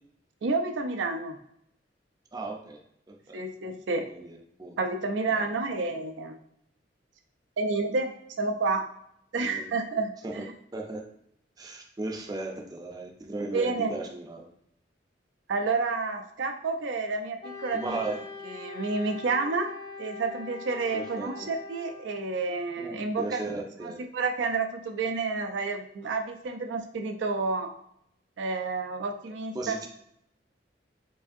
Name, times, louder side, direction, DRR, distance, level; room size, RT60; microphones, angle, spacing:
voice 1, 0.4-1.4 3.3-4.1 4.8-6.4 7.6-8.8 9.3-10.5 13.5-13.9 15.5-18.0 18.5-23.4 23.8-27.7 28.4-29.9, right 3 dB, 80° right, 5 dB, 0.4 m, -30 dB
voice 2, 2.3-2.8 3.1-3.4 4.1-4.8 5.3-5.7 9.4-9.7 10.2-10.4 10.7-11.0 11.6-14.5 17.7-18.2 20.9-21.3 22.8-24.0 29.5-29.9, right 2 dB, 20° right, 1 dB, 0.4 m, -36 dB
Wind instrument woodwind instrument, 17.4-22.2, left 4 dB, 65° left, 0.9 m, -42 dB
4.8 x 2.6 x 2.6 m, 0.74 s
head